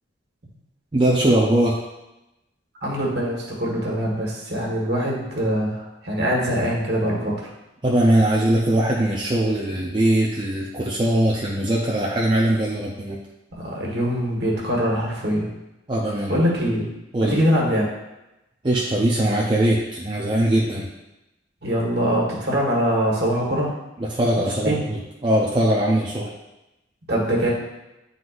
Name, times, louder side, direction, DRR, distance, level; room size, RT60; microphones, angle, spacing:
voice 1, 0.9-1.8 7.8-13.2 15.9-16.4 17.1-17.4 18.6-20.9 24.0-26.3, right 1 dB, 25° right, -4 dB, 0.6 m, -21 dB
voice 2, 2.8-7.5 13.5-15.5 16.3-16.9 17.2-17.8 21.6-23.7 24.4-24.8 27.1-27.5, equal, 60° right, -3 dB, 1.7 m, -23 dB
9.4 x 3.9 x 2.6 m, 0.96 s
head